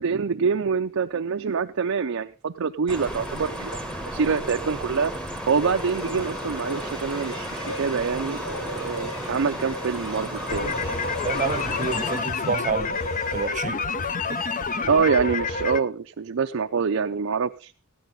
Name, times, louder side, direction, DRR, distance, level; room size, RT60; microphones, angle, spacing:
voice 1, 0.0-5.1 5.5-7.5 7.8-10.7 14.8-17.7, right 5 dB, 70° right, 0.5 m, -25 dB
sound 1, 2.9-12.2, right 1 dB, 5° left, 1.1 m, -34 dB
sound 2, 5.5-14.3, equal, 75° left, 3.2 m, -39 dB
sound 3, 10.5-15.8, left 4 dB, 40° left, 0.6 m, -28 dB
voice 2, 11.2-13.0 13.3-14.4, right 4 dB, 40° right, 0.7 m, -29 dB
14.5 x 10.5 x 3.8 m
head